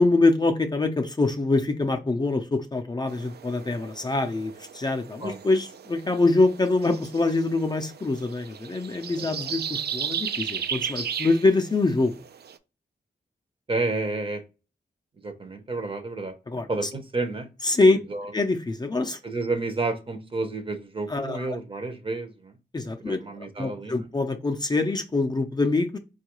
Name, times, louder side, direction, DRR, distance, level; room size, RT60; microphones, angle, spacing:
voice 1, 0.0-12.1 16.5-16.9 17.6-18.0 18.3-19.2 21.1-21.6 22.7-26.0, left 3 dB, 25° left, 0.4 m, -24 dB
sound 1, 3.1-12.6, right 7 dB, 70° right, 0.4 m, -36 dB
voice 2, 9.2-9.5 13.7-14.4 15.2-16.3 16.7-17.5 17.9-18.3 19.2-22.5 23.0-24.1, right 3 dB, 30° right, 0.7 m, -30 dB
4.5 x 2.3 x 2.9 m
wide cardioid pair, 120°, 17 cm